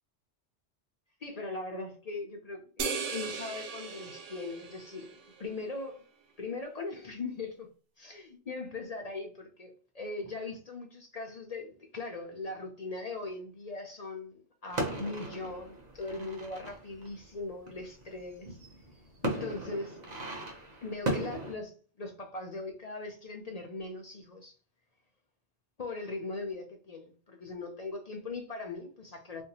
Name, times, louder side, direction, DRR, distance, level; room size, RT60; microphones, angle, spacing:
voice 1, 1.2-6.0 6.4-7.7 8.0-18.6 19.2-20.0 20.8-24.6 25.8-29.4, left 3 dB, 50° left, 0.5 m, -40 dB
sound 1, 2.8-5.5, right 5 dB, 90° right, 1.0 m, -38 dB
sound 2, 14.7-21.5, right 1 dB, 40° right, 0.8 m, -37 dB
3.4 x 2.6 x 2.7 m
omnidirectional pair, 1.2 m